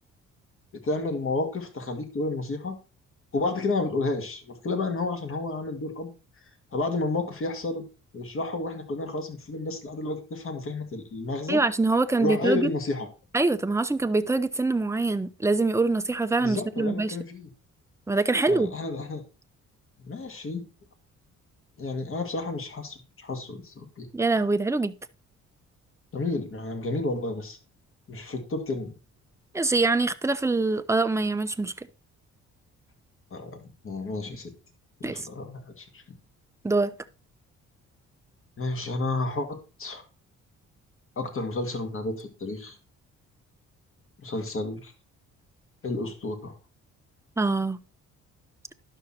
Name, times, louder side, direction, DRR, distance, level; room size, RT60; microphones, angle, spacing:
voice 1, 0.8-2.8 3.3-6.1 6.7-7.9 8.1-11.6 12.2-13.1 16.4-17.5 18.5-19.2 20.0-20.7 21.8-24.1 26.1-27.6 28.1-28.9 33.3-34.5 35.0-36.0 38.6-40.0 41.2-42.8 44.2-44.9 45.8-46.6, left 3 dB, 45° left, 2.2 m, -31 dB
voice 2, 11.5-12.7 13.3-17.2 18.1-18.7 24.1-24.9 29.5-31.7 35.0-35.3 36.6-36.9 47.4-47.8, right 3 dB, 10° right, 0.7 m, -24 dB
11.5 x 6.3 x 4.3 m
cardioid pair, 90°, 30 cm